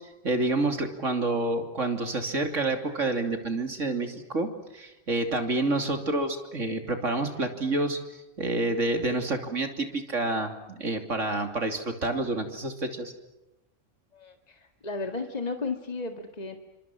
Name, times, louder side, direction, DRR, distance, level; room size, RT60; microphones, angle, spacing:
voice 1, 0.2-8.0 8.4-13.1, right 2 dB, 80° right, 5 dB, 3.4 m, -28 dB
voice 2, 14.1-16.6, left 3 dB, 35° left, 5 dB, 2.0 m, -34 dB
29.5 x 26.0 x 6.2 m, 0.96 s
omnidirectional pair, 1.3 m